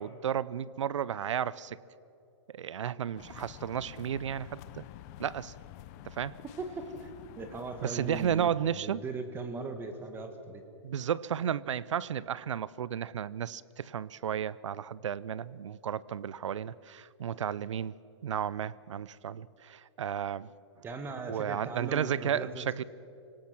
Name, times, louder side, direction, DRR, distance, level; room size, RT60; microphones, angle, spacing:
voice 1, 0.0-1.8 2.5-4.8 5.2-5.5 6.0-6.4 7.8-9.0 10.8-18.0 18.2-20.5 21.3-22.8, right 9 dB, 75° right, 21 dB, 0.6 m, -33 dB
sound 1, 3.2-8.5, left 14 dB, 35° left, 0.8 m, -49 dB
voice 2, 6.6-7.1 7.4-10.6 20.8-22.8, right 3 dB, 15° right, 7 dB, 1.5 m, -39 dB
25.5 x 18.0 x 6.1 m, 2.8 s
hypercardioid pair, 145°, 16 cm